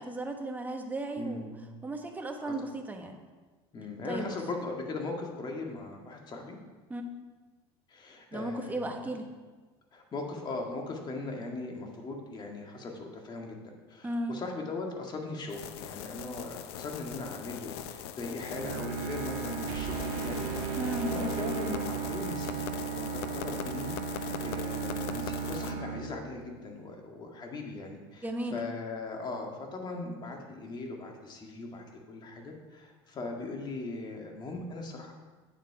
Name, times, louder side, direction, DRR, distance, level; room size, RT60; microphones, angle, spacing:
voice 1, 0.0-1.5 1.8-3.2 4.0-4.3 6.9-7.0 8.3-9.3 14.0-14.3 20.8-21.1 28.2-28.6, right 1 dB, 15° right, 3 dB, 1.2 m, -35 dB
voice 2, 1.1-1.7 2.4-2.5 3.7-6.6 7.9-9.2 9.9-13.6 13.9-20.8 21.1-35.1, left 3 dB, 35° left, 2 dB, 1.8 m, -39 dB
sound 1, 15.5-25.7, left 9 dB, 90° left, 0.6 m, -41 dB
Bowed string instrument, 18.5-26.7, right 6 dB, 60° right, 1.0 m, -36 dB
sound 2, 19.7-22.7, right 6 dB, 80° right, 1.7 m, -39 dB
9.1 x 7.4 x 4.8 m, 1.3 s
supercardioid pair, 115°, 13 cm